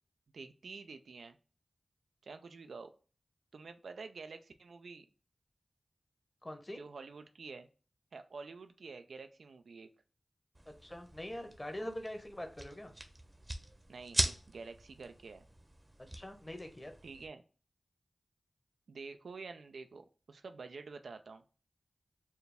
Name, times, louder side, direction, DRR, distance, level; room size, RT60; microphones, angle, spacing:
voice 1, 0.3-1.4 2.2-2.9 3.5-5.1 6.8-7.7 8.1-9.9 13.9-15.5 17.0-17.4 18.9-21.4, right 4 dB, 85° right, 8 dB, 0.3 m, -48 dB
voice 2, 6.4-6.8 10.8-12.9 16.1-16.9, left 1 dB, 25° left, 5 dB, 0.9 m, -43 dB
sound 1, 10.5-17.3, right 1 dB, 30° right, 0.7 m, -41 dB
4.4 x 2.2 x 3.4 m, 0.36 s
cardioid pair, 40°, 0 cm